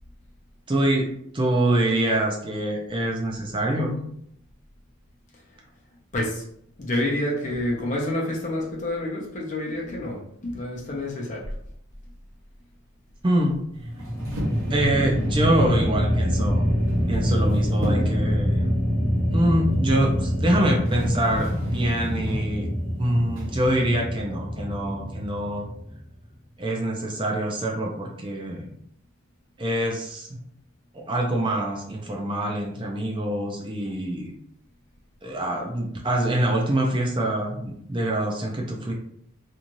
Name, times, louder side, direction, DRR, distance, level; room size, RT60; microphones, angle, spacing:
voice 1, 0.7-4.0 13.2-13.6 14.7-16.7 17.1-18.7 19.3-22.7 23.0-25.7 26.6-28.7 29.6-30.4 30.9-34.4 35.2-38.9, right 1 dB, 20° right, -1 dB, 0.4 m, -25 dB
voice 2, 6.1-6.4 6.8-11.5, left 1 dB, 35° left, -2 dB, 0.7 m, -28 dB
sound 1, 13.8-26.1, equal, 10° left, 0.9 m, -25 dB
sound 2, 14.0-15.4 16.9-17.5 17.8-18.3 20.4-20.5 20.9-22.5 23.4-23.7, equal, 70° right, 0.7 m, -33 dB
2.6 x 2.4 x 3.0 m, 0.71 s
head